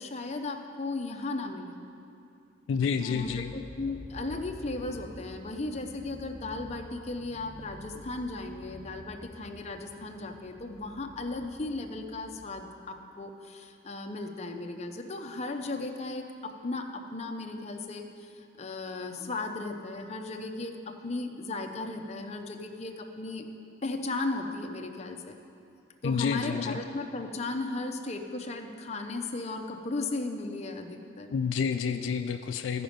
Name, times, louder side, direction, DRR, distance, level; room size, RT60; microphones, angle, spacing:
voice 1, 0.0-1.8 3.0-23.4 23.8-25.4 26.0-31.3, left 2 dB, 35° left, 4 dB, 0.6 m, -36 dB
voice 2, 2.7-3.5 26.0-26.8 31.3-32.8, left 6 dB, 75° left, 8 dB, 0.3 m, -29 dB
sound 1, 3.2-12.6, equal, 10° right, 1.3 m, -48 dB
14.0 x 5.1 x 5.1 m, 2.6 s
head